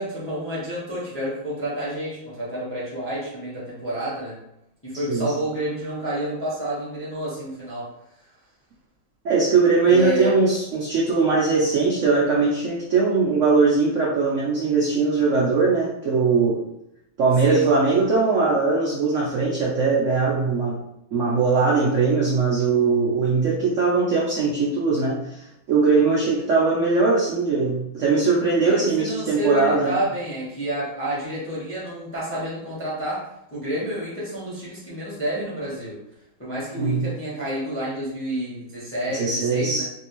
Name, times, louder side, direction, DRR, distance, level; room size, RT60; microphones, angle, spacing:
voice 1, 0.0-4.4 4.8-7.9 9.9-10.3 17.4-17.7 28.6-36.0 36.4-39.8, right 1 dB, 10° left, -7 dB, 0.7 m, -29 dB
voice 2, 9.2-16.6 17.2-20.8 21.1-30.0 36.7-37.0 39.1-39.8, right 4 dB, 75° right, -5 dB, 0.6 m, -20 dB
3.3 x 2.7 x 2.9 m, 0.84 s
omnidirectional pair, 2.1 m